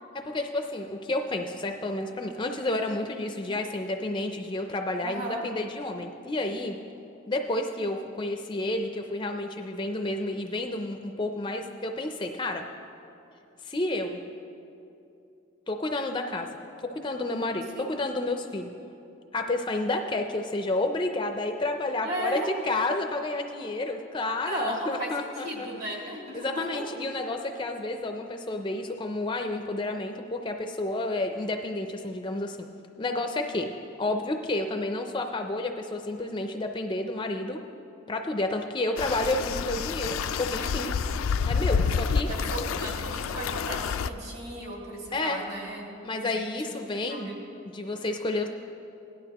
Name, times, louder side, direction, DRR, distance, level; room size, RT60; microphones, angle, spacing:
voice 1, 0.1-6.8 7.3-12.6 13.6-14.2 15.7-16.5 16.8-18.7 19.3-25.7 26.3-32.7 33.0-33.7 34.0-37.6 38.1-40.9 41.4-42.3 45.1-45.4 46.0-47.3 47.7-48.5, left 2 dB, 25° left, 5 dB, 0.4 m, -30 dB
voice 2, 5.0-5.4 17.7-17.9 22.0-22.5 24.4-26.8 40.6-41.0 42.0-45.9 46.2-46.4 47.1-47.3, right 1 dB, 50° right, -4 dB, 2.7 m, -35 dB
sound 1, 39.0-44.1, left 5 dB, 85° left, 0.4 m, -28 dB
17.0 x 11.0 x 2.9 m, 2.7 s
head